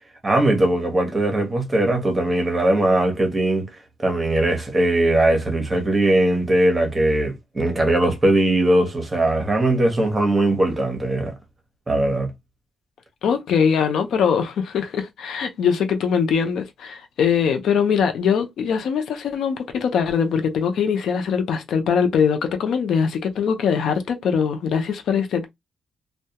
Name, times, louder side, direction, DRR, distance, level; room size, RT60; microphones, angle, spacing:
voice 1, 0.2-3.7 4.0-11.3 11.9-12.3, right 1 dB, 20° right, 0.8 m, -20 dB
voice 2, 13.2-25.5, left 7 dB, 70° left, 0.5 m, -22 dB
2.2 x 2.1 x 2.8 m
cardioid pair, 120°, 0 cm